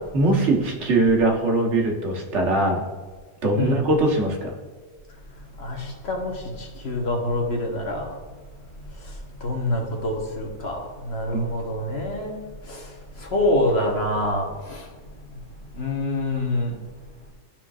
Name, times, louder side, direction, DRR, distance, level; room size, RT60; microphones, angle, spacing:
voice 1, 0.1-2.8 3.4-4.5 11.3-11.4, right 2 dB, 85° right, 1 dB, 1.5 m, -21 dB
voice 2, 5.6-8.1 9.0-9.1 9.4-14.9 15.3-15.4 15.7-16.8, left 1 dB, 65° left, 1 dB, 1.4 m, -26 dB
12.0 x 4.4 x 2.4 m, 1.5 s
omnidirectional pair, 1.2 m